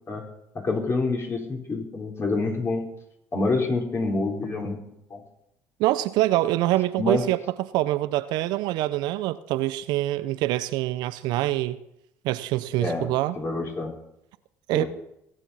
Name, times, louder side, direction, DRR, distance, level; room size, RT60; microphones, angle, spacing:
voice 1, 0.5-2.8 3.3-5.2 7.0-7.2 12.8-13.1 13.4-13.9 14.7-14.9, left 3 dB, 35° left, 4.0 m, -27 dB
voice 2, 5.8-7.4 7.7-11.8 12.2-13.4 14.7-14.8, right 16 dB, 65° right, 0.6 m, -25 dB
18.5 x 8.4 x 4.2 m
hypercardioid pair, 70°, 8 cm